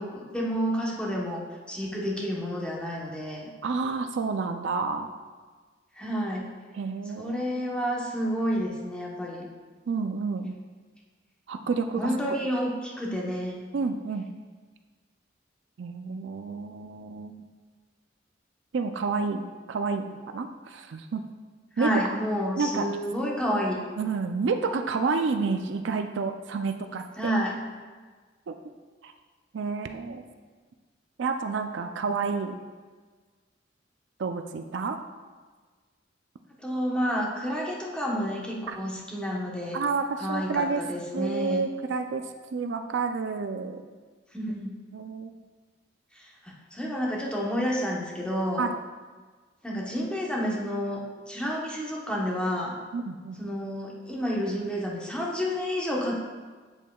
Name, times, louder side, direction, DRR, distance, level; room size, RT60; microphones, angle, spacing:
voice 1, 0.0-3.5 6.0-6.5 7.2-9.5 12.0-13.7 21.8-23.8 27.2-27.6 36.6-39.8 40.2-41.6 44.3-44.7 46.1-48.7 49.6-52.8 53.4-56.2, equal, 5° left, -3 dB, 1.0 m, -30 dB
voice 2, 3.6-5.1 6.7-7.4 9.9-10.6 11.5-12.4 13.7-14.3 15.8-17.5 18.7-19.4 19.7-21.2 21.8-21.9 22.6-22.9 24.0-27.3 28.5-28.6 29.0-29.1 29.5-30.2 31.2-32.6 34.2-35.0 38.7-38.8 39.7-40.8 41.1-42.2 42.5-43.8 44.9-45.3 48.6-48.7 52.9-53.5, right 4 dB, 70° right, 7 dB, 0.4 m, -29 dB
8.0 x 7.2 x 2.3 m, 1.4 s
head